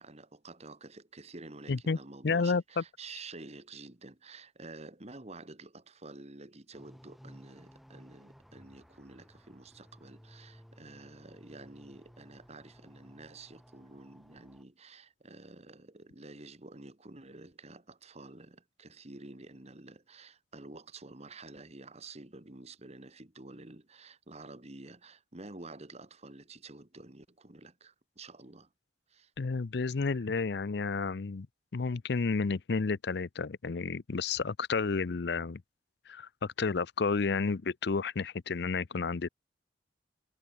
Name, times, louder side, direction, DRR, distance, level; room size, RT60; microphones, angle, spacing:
voice 1, 0.0-28.7 29.1-29.3, right 2 dB, 35° right, 1.9 m, -50 dB
voice 2, 2.2-2.8 29.4-31.5 31.7-35.6 36.1-39.3, left 4 dB, 65° left, 0.6 m, -31 dB
sound 1, 6.7-14.6, equal, ahead, 2.3 m, -57 dB
head